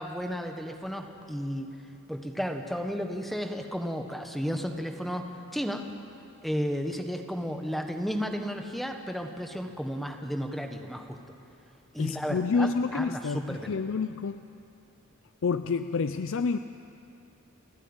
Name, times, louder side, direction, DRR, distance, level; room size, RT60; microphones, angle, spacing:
voice 1, 0.0-1.7 2.1-5.2 5.5-5.8 6.4-11.2 11.9-13.7, equal, ahead, 4 dB, 1.2 m, -33 dB
voice 2, 12.0-14.4 15.4-16.6, left 4 dB, 60° left, 10 dB, 0.5 m, -28 dB
30.0 x 10.0 x 8.8 m, 2.8 s
head